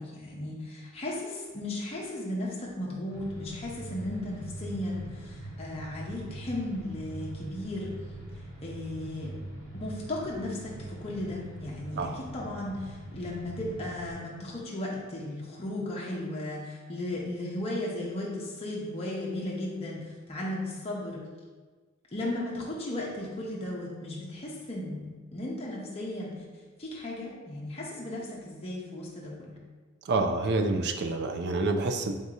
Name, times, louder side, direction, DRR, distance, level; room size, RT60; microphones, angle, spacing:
voice 1, 0.0-8.0 8.6-9.5 9.7-21.3 22.1-26.4 26.8-29.6, left 1 dB, 30° left, -4 dB, 0.7 m, -35 dB
sound 1, 3.1-14.1, right 1 dB, 85° right, 1.4 m, -42 dB
voice 2, 30.1-32.1, right 3 dB, 55° right, 6 dB, 0.4 m, -28 dB
3.7 x 2.7 x 4.7 m, 1.4 s
head